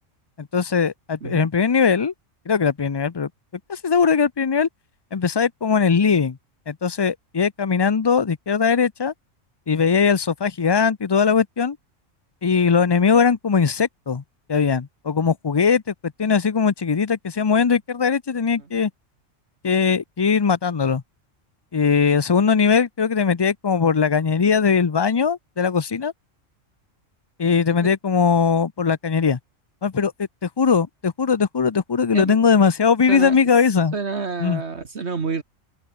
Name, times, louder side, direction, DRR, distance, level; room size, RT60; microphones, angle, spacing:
voice 1, 0.4-2.1 2.5-3.3 3.7-4.7 5.1-6.4 6.7-9.1 9.7-11.8 12.4-14.2 14.5-18.9 19.6-21.0 21.7-26.1 27.4-29.4 29.8-33.9 34.4-34.6, left 6 dB, 35° left, 0.4 m, -20 dB
voice 2, 33.9-35.4, right 4 dB, 55° right, 1.9 m, -28 dB
omnidirectional pair, 1.3 m